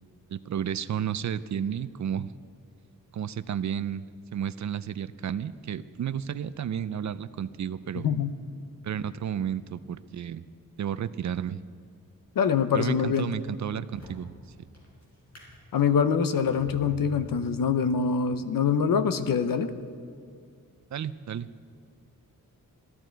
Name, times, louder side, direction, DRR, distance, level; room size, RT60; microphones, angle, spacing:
voice 1, 0.3-2.3 3.1-4.1 4.3-8.1 8.8-10.4 10.8-11.6 12.7-14.3 20.9-21.5, right 9 dB, 55° right, 15 dB, 0.4 m, -32 dB
voice 2, 8.0-8.3 12.4-13.3 15.7-19.7, left 6 dB, 75° left, 11 dB, 0.7 m, -24 dB
Drawer open or close, 12.1-12.4 12.9-18.1 18.8-19.0, left 1 dB, 50° left, 4.8 m, -49 dB
16.5 x 13.5 x 4.6 m, 2.2 s
wide cardioid pair, 180°, 34 cm